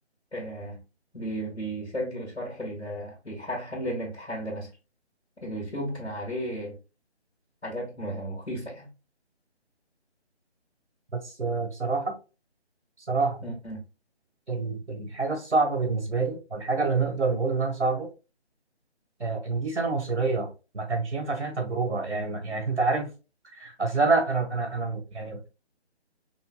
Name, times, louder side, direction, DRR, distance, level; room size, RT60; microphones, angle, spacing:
voice 1, 0.3-0.8 1.1-4.7 5.4-6.8 7.6-8.9 13.4-13.9, equal, 90° left, 2.0 m, -34 dB
voice 2, 11.1-12.1 13.1-13.4 14.5-18.1 19.2-20.5 20.7-23.1 23.5-25.4, right 3 dB, 80° right, 1.4 m, -27 dB
5.6 x 2.3 x 2.3 m
figure-of-eight pair, 155°, 34 cm